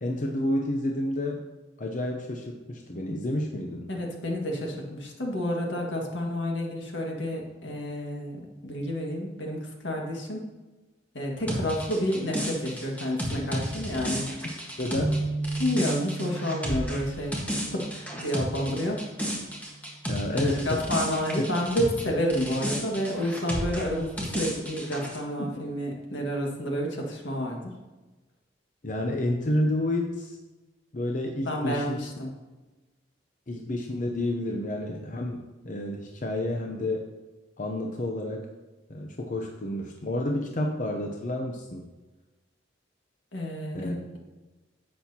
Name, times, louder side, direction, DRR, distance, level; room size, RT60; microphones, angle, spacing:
voice 1, 0.0-1.4 1.8-3.9 11.5-11.7 14.8-15.2 20.1-20.8 21.4-21.5 25.4-25.6 28.8-30.4 30.9-32.0 33.5-37.1 37.6-38.5 38.9-41.9 43.7-43.9, left 1 dB, 45° left, 1 dB, 0.7 m, -30 dB
voice 2, 3.9-10.5 11.1-14.3 15.6-17.3 17.7-19.0 20.3-27.7 31.5-32.3 43.3-44.2, equal, 75° left, 0 dB, 1.8 m, -30 dB
sound 1, 11.5-22.0 22.3-25.2, equal, 10° left, 1.4 m, -33 dB
sound 2, 15.0-19.2 19.7-19.9 20.8-21.2, right 2 dB, 65° right, 1.4 m, -35 dB
10.5 x 7.6 x 2.9 m, 1.2 s
head